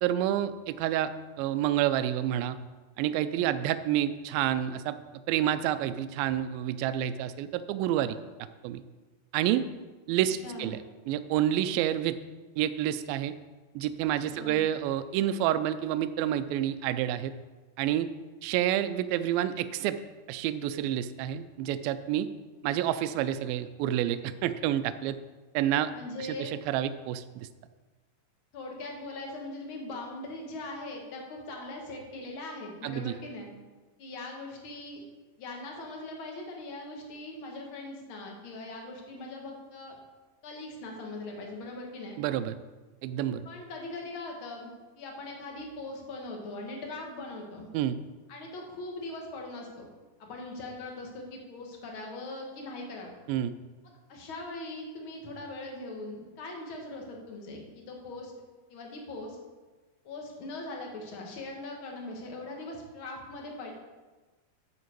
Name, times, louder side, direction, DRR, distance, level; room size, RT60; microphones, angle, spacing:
voice 1, 0.0-1.1 1.4-2.6 3.0-5.0 5.3-8.2 8.6-8.8 9.3-9.7 10.1-12.2 12.6-13.3 13.8-17.3 17.8-18.1 18.4-20.0 20.3-22.3 22.6-25.2 25.5-25.9 26.2-27.5 32.8-33.1 42.2-42.6 43.0-43.4 47.7-48.0 53.3-53.5, right 11 dB, 85° right, 11 dB, 2.3 m, -28 dB
voice 2, 10.4-10.8 14.2-14.6 25.9-26.6 28.5-33.5 34.0-35.0 35.4-40.0 40.4-42.2 43.5-47.7 48.3-49.9 50.2-53.2 53.8-58.3 58.7-59.4 60.0-63.7, left 2 dB, 45° left, 0 dB, 1.9 m, -41 dB
11.0 x 8.0 x 4.6 m, 1.3 s
omnidirectional pair, 4.3 m